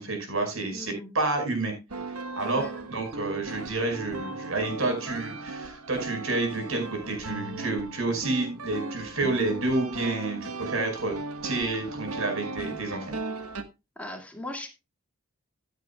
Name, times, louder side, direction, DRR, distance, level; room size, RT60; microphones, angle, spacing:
voice 1, 0.0-1.7 2.4-11.2 11.4-13.1, right 2 dB, 65° right, 5 dB, 5.1 m, -29 dB
voice 2, 0.7-1.1 2.5-2.9 14.0-14.7, left 1 dB, 5° left, 2 dB, 2.0 m, -38 dB
sound 1, 1.9-13.6, right 3 dB, 85° right, 1.2 m, -37 dB
15.5 x 9.3 x 2.3 m, 0.27 s
head